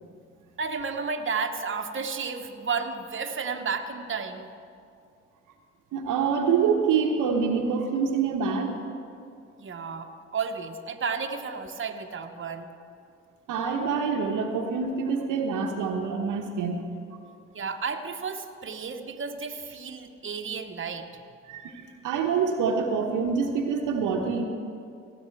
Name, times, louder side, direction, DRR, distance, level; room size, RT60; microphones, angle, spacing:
voice 1, 0.6-4.5 9.6-12.7 17.5-21.2, right 5 dB, 40° right, 5 dB, 1.0 m, -32 dB
voice 2, 5.9-8.7 13.5-16.8 21.5-24.4, right 5 dB, 85° right, 3 dB, 1.0 m, -26 dB
17.0 x 8.7 x 4.5 m, 2.4 s
supercardioid pair, 45°, 31 cm